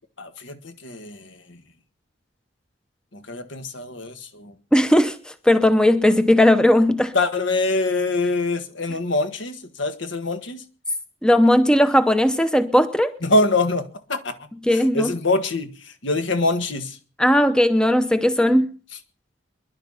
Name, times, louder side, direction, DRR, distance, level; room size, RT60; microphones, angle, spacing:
voice 1, 0.2-1.6 3.1-4.5 7.1-10.6 13.2-14.4 14.7-15.7 16.0-17.0, left 2 dB, 70° left, 1.7 m, -24 dB
voice 2, 4.7-7.1 11.2-13.1 14.6-15.1 17.2-18.7, left 1 dB, 5° left, 0.8 m, -17 dB
22.5 x 11.5 x 5.7 m
head